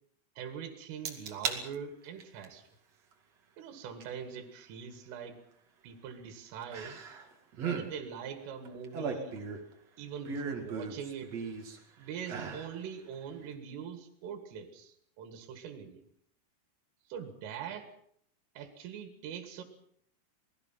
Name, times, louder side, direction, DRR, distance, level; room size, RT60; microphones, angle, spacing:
voice 1, 0.4-2.6 3.6-5.4 5.8-7.0 7.6-9.4 10.0-11.3 12.0-16.0 17.1-17.9 18.6-19.6, right 7 dB, 80° right, 7 dB, 4.5 m, -43 dB
sound 1, 1.0-1.6 2.0-2.4 4.0-4.1 6.7-7.3 7.5-7.9 8.6-9.7 10.2-11.8 12.2-12.7 13.1-13.2, right 5 dB, 45° right, 2.6 m, -36 dB
27.0 x 19.5 x 5.8 m, 0.66 s
omnidirectional pair, 5.7 m